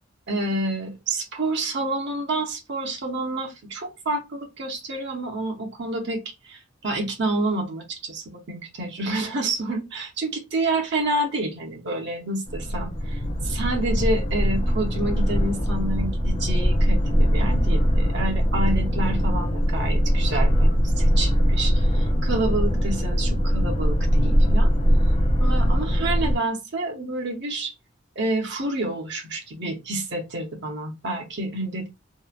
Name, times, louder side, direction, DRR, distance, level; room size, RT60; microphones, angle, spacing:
voice 1, 0.3-24.7 25.4-27.7 28.2-31.9, right 2 dB, 65° right, 0.7 m, -29 dB
sound 1, 12.5-26.3, equal, 30° left, 0.4 m, -21 dB
3.0 x 2.1 x 2.3 m
head